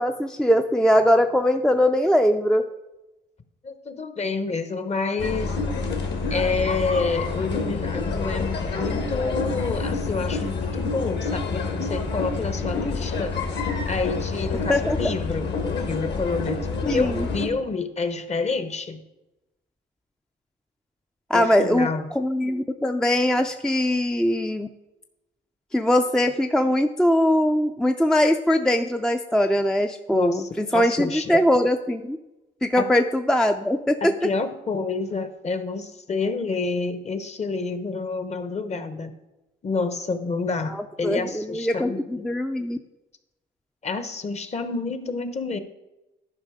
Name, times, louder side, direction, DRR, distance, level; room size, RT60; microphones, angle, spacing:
voice 1, 0.0-2.7 14.7-15.1 16.8-17.3 21.3-21.9 22.1-24.7 25.7-32.2 32.6-34.1 40.7-42.8, left 1 dB, 5° left, 6 dB, 0.4 m, -21 dB
voice 2, 3.6-5.6 6.3-13.3 13.8-19.0 21.3-22.1 30.1-31.5 32.8-32.9 34.0-39.1 39.6-42.2 43.8-45.6, left 4 dB, 35° left, 10 dB, 0.9 m, -28 dB
sound 1, 5.2-17.5, left 4 dB, 60° left, 1.8 m, -28 dB
11.0 x 5.2 x 4.9 m, 0.99 s
cardioid pair, 90°, 20 cm